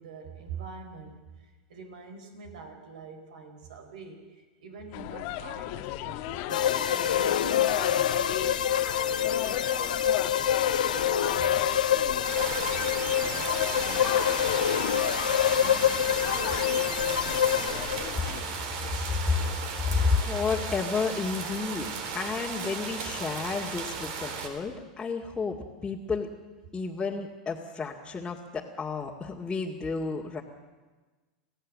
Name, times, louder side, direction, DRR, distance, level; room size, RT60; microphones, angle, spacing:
voice 1, 0.0-11.8 12.2-14.7 15.6-18.1, right 5 dB, 75° right, 6 dB, 4.5 m, -45 dB
sound 1, 4.9-18.4, left 14 dB, 55° left, 1.4 m, -36 dB
sound 2, 6.5-18.3, left 9 dB, 85° left, 1.3 m, -26 dB
sound 3, 12.2-24.5, right 5 dB, 60° right, 3.7 m, -36 dB
voice 2, 19.8-21.9 22.1-26.3 26.7-30.4, left 4 dB, 15° left, -5 dB, 2.2 m, -31 dB
28.0 x 16.0 x 7.6 m, 1.3 s
hypercardioid pair, 100°, 4 cm